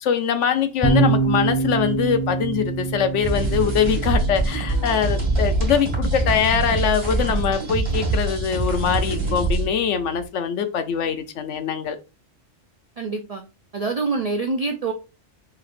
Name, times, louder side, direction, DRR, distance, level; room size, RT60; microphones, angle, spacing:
voice 1, 0.0-12.0, left 7 dB, 70° left, 0.9 m, -23 dB
sound 1, 0.8-10.2, right 4 dB, 25° left, 0.7 m, -27 dB
sound 2, 3.2-9.7, right 2 dB, 20° right, 1.7 m, -24 dB
voice 2, 13.0-13.4 13.7-14.9, right 4 dB, 70° right, 0.3 m, -25 dB
5.7 x 3.1 x 2.5 m
omnidirectional pair, 1.3 m